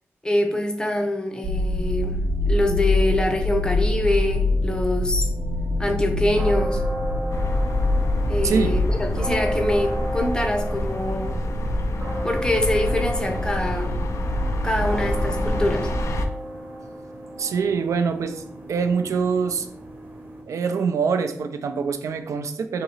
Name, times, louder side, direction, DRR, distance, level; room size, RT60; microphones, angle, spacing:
voice 1, 0.2-5.3 5.8-6.8 8.3-11.4 12.2-13.9 14.6-15.9, left 1 dB, 15° left, 4 dB, 0.6 m, -25 dB
sound 1, 1.4-9.0, left 2 dB, 65° right, 0.8 m, -24 dB
sound 2, 6.4-20.4, equal, 35° right, 0.7 m, -33 dB
sound 3, 7.3-16.3, left 1 dB, 70° left, 0.4 m, -26 dB
voice 2, 17.4-19.7 20.5-22.8, right 5 dB, 85° right, 8 dB, 0.3 m, -24 dB
2.9 x 2.7 x 4.1 m, 0.67 s
wide cardioid pair, 85°, 5 cm